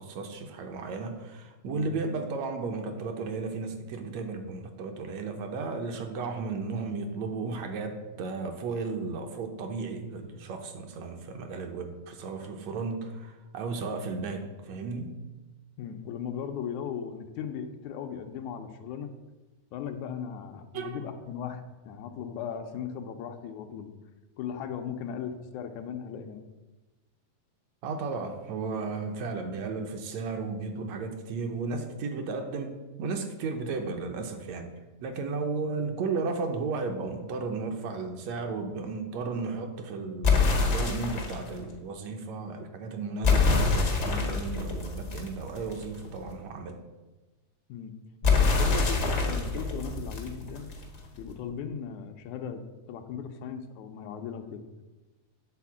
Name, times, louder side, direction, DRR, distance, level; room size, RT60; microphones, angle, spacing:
voice 1, 0.0-15.2 20.7-21.0 27.8-34.7 35.0-46.8, right 4 dB, 70° right, 5 dB, 1.9 m, -34 dB
voice 2, 15.8-19.1 19.7-23.9 24.4-26.4 47.7-47.9 48.5-50.7 51.2-52.6 52.9-54.6, left 7 dB, 80° left, 6 dB, 2.1 m, -37 dB
sound 1, 40.2-41.5 43.2-46.0 48.2-51.0, left 4 dB, 60° left, 0.7 m, -25 dB
9.3 x 4.2 x 7.2 m, 1.1 s
omnidirectional pair, 3.3 m